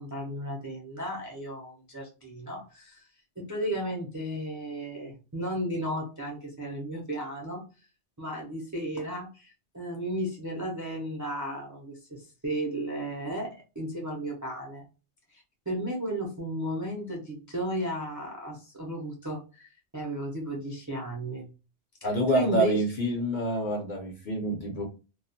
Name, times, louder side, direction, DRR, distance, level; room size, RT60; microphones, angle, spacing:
voice 1, 0.0-3.1 3.4-7.6 8.2-14.9 15.3-21.5 22.3-22.8, right 1 dB, 30° right, -2 dB, 0.3 m, -34 dB
voice 2, 22.0-24.8, right 1 dB, 50° left, 0 dB, 0.6 m, -27 dB
2.3 x 2.1 x 2.7 m, 0.33 s
omnidirectional pair, 1.2 m